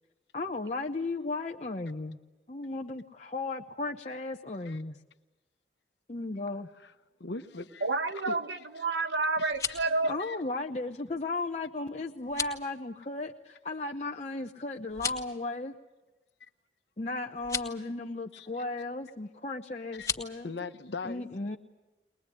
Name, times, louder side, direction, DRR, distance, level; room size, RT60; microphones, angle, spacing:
voice 1, 0.3-2.2 2.5-5.0 6.1-6.7 10.0-15.7 17.0-20.5 21.0-21.6, left 2 dB, 35° left, 0.8 m, -35 dB
voice 2, 7.2-7.8 8.1-8.4 9.4-9.5 10.2-10.4 18.3-18.5 19.9-20.1 20.4-21.2, left 3 dB, 70° left, 1.0 m, -39 dB
voice 3, 7.8-10.2, right 3 dB, 80° right, 1.3 m, -29 dB
sound 1, 9.3-9.9 12.2-12.6 14.9-15.3 17.4-17.7 19.9-20.3, left 6 dB, 20° left, 1.8 m, -34 dB
21.5 x 21.5 x 9.9 m
head